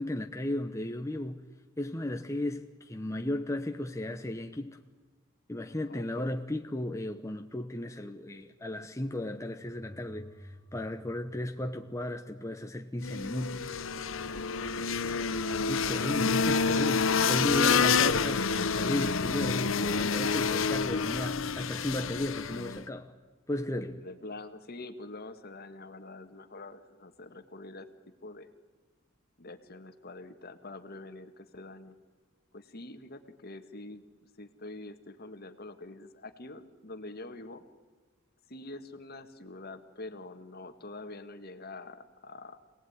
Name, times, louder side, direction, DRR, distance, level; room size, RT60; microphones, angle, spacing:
voice 1, 0.0-1.5 1.8-4.8 5.5-13.7 15.7-23.1 23.5-24.1, left 1 dB, 15° left, 0.9 m, -35 dB
voice 2, 5.9-6.3 14.3-14.4 24.0-27.9 28.2-28.5 29.4-32.0 32.5-34.0 34.4-37.6 38.5-42.6, left 2 dB, 50° left, 1.7 m, -45 dB
sound 1, 9.6-12.5, equal, 35° left, 2.0 m, -52 dB
sound 2, 13.0-22.8, left 5 dB, 70° left, 0.9 m, -28 dB
26.5 x 18.5 x 9.6 m
head